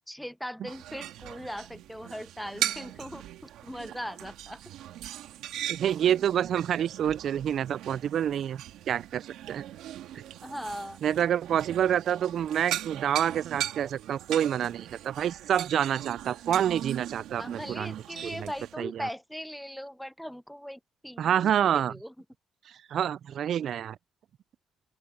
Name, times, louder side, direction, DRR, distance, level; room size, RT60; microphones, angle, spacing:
voice 1, 0.1-4.6 10.1-11.0 17.4-21.5 21.7-22.1, equal, ahead, 0.6 m, -39 dB
sound 1, 0.7-18.7, right 12 dB, 90° right, 2.0 m, -39 dB
voice 2, 5.7-9.6 11.0-18.5 18.8-19.1 21.2-21.9 22.9-24.0, right 9 dB, 65° right, 0.3 m, -28 dB
open air
cardioid pair, 90°, 0 cm